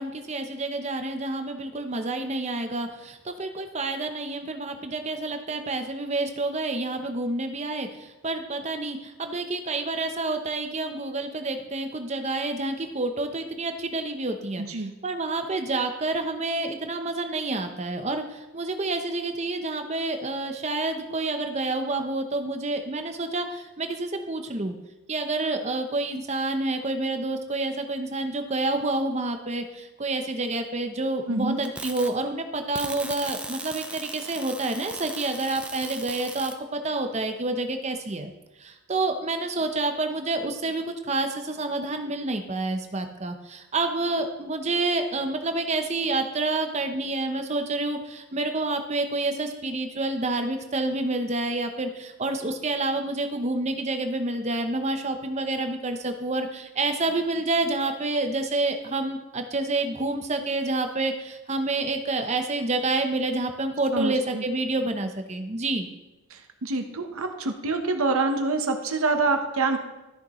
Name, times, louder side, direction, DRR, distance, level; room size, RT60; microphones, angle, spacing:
voice 1, 0.0-24.7 25.1-38.3 38.6-65.9, right 2 dB, 30° right, 6 dB, 0.8 m, -28 dB
voice 2, 14.6-14.9 31.3-31.6 63.9-64.4 66.3-69.8, right 3 dB, 75° right, 5 dB, 1.0 m, -26 dB
sound 1, 31.6-32.1 32.7-36.6, right 2 dB, 5° right, 0.4 m, -38 dB
13.5 x 6.6 x 3.1 m, 1.1 s
head